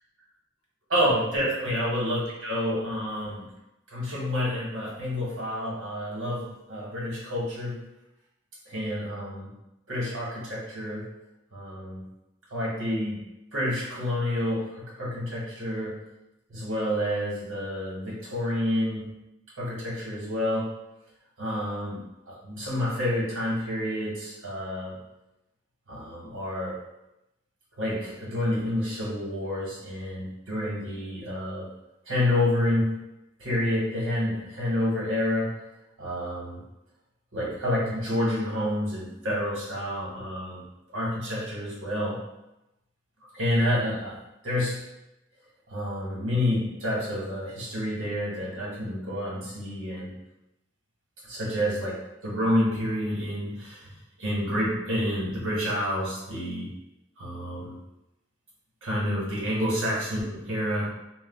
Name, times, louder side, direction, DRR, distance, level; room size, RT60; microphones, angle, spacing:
voice 1, 0.9-3.5 3.9-7.8 8.7-9.5 9.9-11.1 11.5-12.0 12.5-13.2 13.5-16.0 16.5-19.0 19.6-20.7 21.4-22.0 22.3-25.0 25.9-26.7 27.8-31.7 32.1-32.9 33.4-35.5 36.0-36.6 37.3-40.6 40.9-42.2 43.3-44.2 44.4-44.8 45.7-50.1 51.2-53.9 54.2-56.7 57.2-57.8 58.8-60.9, left 1 dB, 85° right, -5 dB, 1.1 m, -29 dB
2.3 x 2.1 x 3.5 m, 0.91 s
head